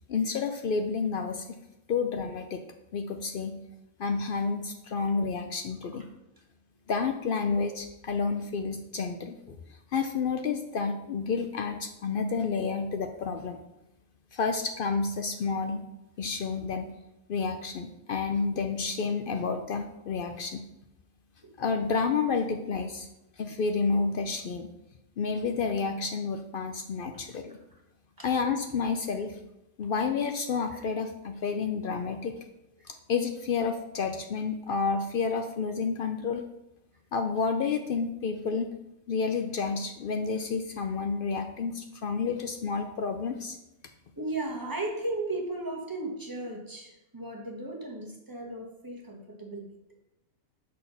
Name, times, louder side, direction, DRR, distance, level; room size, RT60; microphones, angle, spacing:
voice 1, 0.1-1.6 1.9-2.6 2.9-3.6 4.0-6.1 6.9-9.6 9.9-13.6 14.3-15.8 16.2-16.9 17.3-20.6 21.6-23.1 23.4-24.7 25.2-27.6 28.2-29.4 29.8-32.4 32.8-36.4 37.1-38.7 39.1-43.6, left 5 dB, 70° left, 6 dB, 0.5 m, -30 dB
voice 2, 44.2-49.7, right 2 dB, 15° right, 0 dB, 1.0 m, -36 dB
6.3 x 4.2 x 5.5 m, 0.90 s
omnidirectional pair, 1.4 m